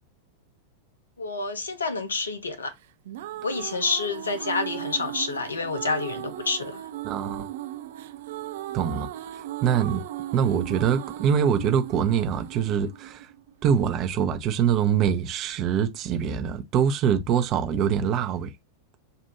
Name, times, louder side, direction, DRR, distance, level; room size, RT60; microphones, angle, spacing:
voice 1, 1.2-2.7 3.4-6.9, left 3 dB, 70° left, 0.8 m, -28 dB
sound 1, 2.8-13.8, right 14 dB, 55° right, 0.4 m, -37 dB
voice 2, 7.0-7.5 8.7-9.1 9.6-10.0 10.3-13.3 13.6-18.5, right 8 dB, 35° right, 0.8 m, -24 dB
6.7 x 2.6 x 2.8 m
figure-of-eight pair, 90°, 0 cm